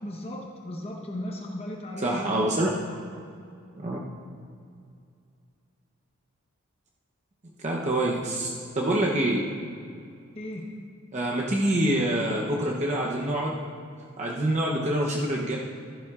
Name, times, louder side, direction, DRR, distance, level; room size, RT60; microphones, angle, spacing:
voice 1, 0.0-2.7 10.3-10.7, left 1 dB, 30° left, 0 dB, 0.9 m, -36 dB
voice 2, 2.0-3.0 3.8-4.0 7.6-9.5 11.1-13.6 14.2-15.6, right 1 dB, 35° right, -2 dB, 0.7 m, -26 dB
13.5 x 11.0 x 2.4 m, 2.4 s
head